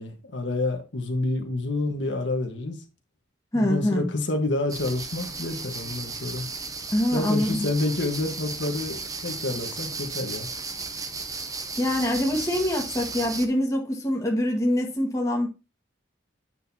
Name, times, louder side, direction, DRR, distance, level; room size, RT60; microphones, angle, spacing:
voice 1, 0.0-2.8 3.5-6.4 7.1-10.5, left 2 dB, 75° left, 1.5 m, -28 dB
voice 2, 3.5-4.0 6.9-7.6 11.8-15.5, left 1 dB, 15° left, 1.7 m, -24 dB
sound 1, 4.7-13.5, right 4 dB, 20° right, 0.8 m, -35 dB
9.0 x 6.5 x 2.8 m
head